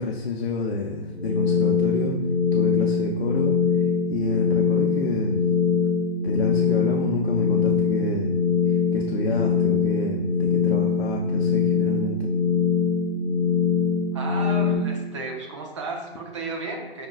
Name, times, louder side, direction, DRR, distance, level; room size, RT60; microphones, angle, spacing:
voice 1, 0.0-2.2 2.5-5.8 6.2-8.3 8.7-12.3, left 3 dB, 65° left, 0 dB, 0.6 m, -29 dB
sound 1, 1.1-14.8, left 5 dB, 15° left, 1.1 m, -23 dB
voice 2, 14.1-17.1, right 3 dB, 30° right, 2 dB, 0.6 m, -33 dB
5.1 x 3.7 x 2.3 m, 1.1 s
figure-of-eight pair, 145°, 32 cm